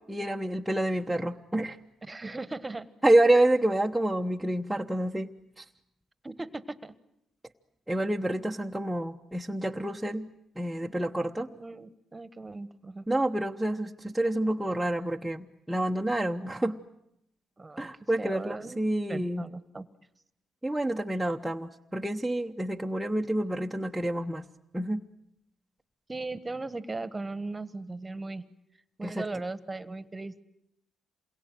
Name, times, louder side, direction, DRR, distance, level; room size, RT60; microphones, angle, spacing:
voice 1, 0.1-1.8 3.0-5.3 5.6-5.7 7.9-10.3 10.6-11.5 13.1-16.8 17.8-19.4 20.6-24.4 24.7-25.0 29.0-29.3, right 1 dB, 5° right, 0 dB, 1.0 m, -28 dB
voice 2, 2.0-2.9 6.2-6.9 11.5-13.0 17.6-17.9 18.2-18.8 19.1-19.8 26.1-28.4 29.0-30.4, right 3 dB, 20° right, 15 dB, 1.4 m, -38 dB
28.0 x 22.5 x 9.2 m, 0.79 s
cardioid pair, 90°, 0 cm